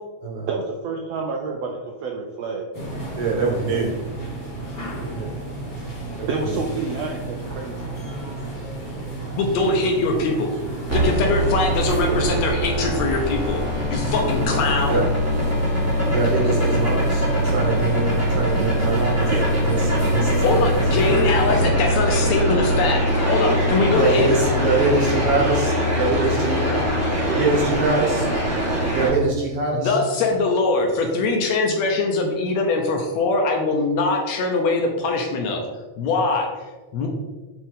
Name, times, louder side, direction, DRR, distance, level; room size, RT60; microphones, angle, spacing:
voice 1, 0.5-2.7 6.3-7.8 19.3-19.4, right 4 dB, 80° right, 1 dB, 1.5 m, -28 dB
sound 1, 2.7-21.6, right 2 dB, 40° left, 2.4 m, -33 dB
voice 2, 3.2-3.9 4.9-5.3 6.2-6.6 10.6-10.7 12.1-12.3 14.9-15.0 16.1-19.3 19.7-20.8 23.4-23.6 23.9-26.7 27.3-28.3 28.8-29.9, right 3 dB, 60° right, -1 dB, 1.7 m, -24 dB
voice 3, 9.4-10.5 10.9-15.0 20.4-24.3 29.1-29.2 29.7-35.6 36.0-36.5 36.9-37.1, left 3 dB, 75° left, 2 dB, 1.8 m, -22 dB
sound 2, 10.9-29.1, equal, 15° right, 0.6 m, -22 dB
6.8 x 4.5 x 3.6 m, 1.2 s
omnidirectional pair, 3.5 m